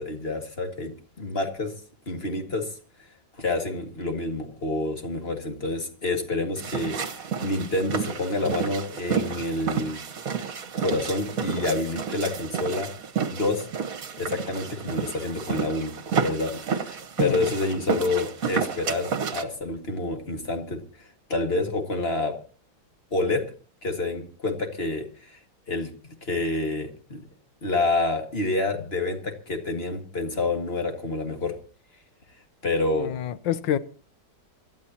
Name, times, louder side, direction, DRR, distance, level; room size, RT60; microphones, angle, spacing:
voice 1, 0.0-1.7 2.1-2.7 3.4-10.0 10.8-12.9 13.3-13.7 14.2-15.9 16.2-20.8 21.3-22.4 23.1-23.4 23.8-25.4 25.7-25.9 26.2-27.3 27.6-31.5 32.6-33.1, left 2 dB, 35° left, 2.2 m, -28 dB
sound 1, 6.6-19.4, right 6 dB, 50° right, 1.6 m, -31 dB
voice 2, 33.0-33.8, left 10 dB, 90° left, 1.5 m, -27 dB
27.5 x 12.5 x 2.9 m
omnidirectional pair, 1.9 m